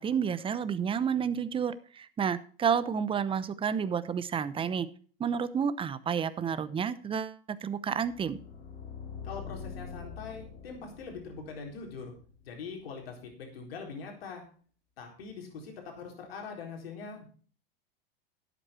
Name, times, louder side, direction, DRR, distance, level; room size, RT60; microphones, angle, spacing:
voice 1, 0.0-4.9 5.2-8.4, right 7 dB, 20° right, 14 dB, 0.8 m, -30 dB
sound 1, 7.9-12.9, left 6 dB, 35° left, 3.5 m, -45 dB
voice 2, 9.2-12.1 12.4-14.4 15.0-17.3, left 5 dB, 85° left, 2 dB, 4.1 m, -42 dB
12.0 x 8.2 x 4.4 m, 0.42 s
hypercardioid pair, 115°, 29 cm